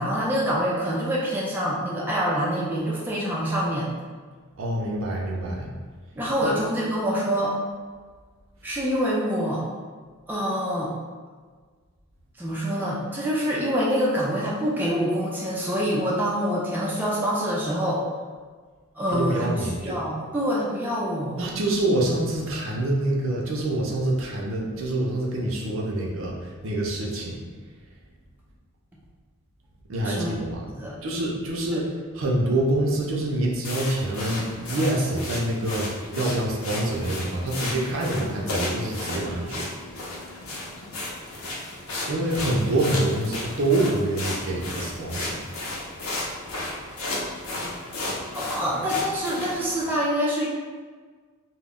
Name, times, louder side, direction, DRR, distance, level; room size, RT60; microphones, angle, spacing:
voice 1, 0.0-3.9 6.2-7.6 8.6-9.6 10.3-10.9 12.4-18.0 19.0-19.5 19.8-21.4 30.0-30.3 30.8-31.0 31.7-31.8 48.3-50.5, equal, 10° right, -6 dB, 0.3 m, -26 dB
voice 2, 4.6-5.7 6.4-6.5 19.1-20.0 21.3-27.5 29.9-30.7 31.0-39.7 42.1-45.4, right 1 dB, 65° right, -2 dB, 0.5 m, -26 dB
sound 1, 33.6-49.9, left 2 dB, 85° left, 0.6 m, -33 dB
2.2 x 2.0 x 3.5 m, 1.5 s
head